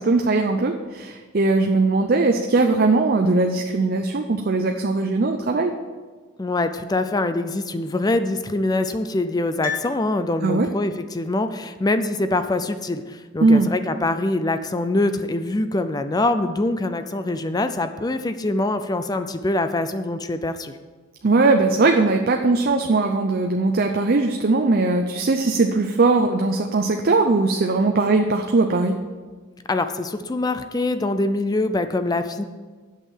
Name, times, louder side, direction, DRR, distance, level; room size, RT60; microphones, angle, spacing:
voice 1, 0.0-5.7 10.4-10.7 13.4-13.7 21.2-28.9, right 3 dB, 45° right, 4 dB, 0.5 m, -19 dB
voice 2, 6.4-20.8 29.7-32.4, left 2 dB, 20° left, 10 dB, 0.4 m, -24 dB
Piano, 9.6-10.9 11.1-11.2, left 7 dB, 45° left, 1.2 m, -34 dB
8.1 x 6.6 x 7.3 m, 1.4 s
head